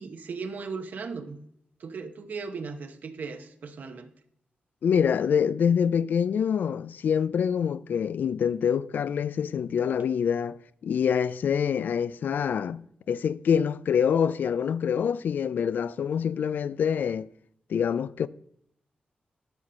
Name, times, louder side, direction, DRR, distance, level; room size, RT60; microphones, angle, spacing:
voice 1, 0.0-1.4 1.8-4.1, right 4 dB, 65° right, 0.9 m, -37 dB
voice 2, 4.8-10.6 10.8-12.8 13.1-17.3 17.7-18.3, left 7 dB, 75° left, 0.3 m, -25 dB
11.5 x 4.2 x 6.4 m
wide cardioid pair, 115°, 3 cm